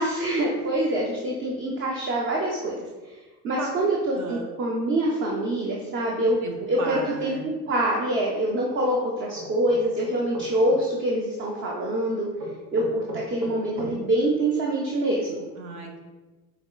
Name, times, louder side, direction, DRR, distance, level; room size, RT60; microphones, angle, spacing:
voice 1, 0.0-2.8 3.4-6.4 6.7-7.3 7.7-12.3 12.7-15.4, right 1 dB, 25° right, -2 dB, 0.5 m, -25 dB
voice 2, 4.1-4.5 6.4-6.5 6.8-7.4 15.6-16.0, right 3 dB, 50° right, 2 dB, 1.0 m, -34 dB
sound 1, 9.3-10.8 12.4-13.9, right 2 dB, 80° right, 1.1 m, -36 dB
4.9 x 3.2 x 2.4 m, 1.2 s
hypercardioid pair, 80°, 50 cm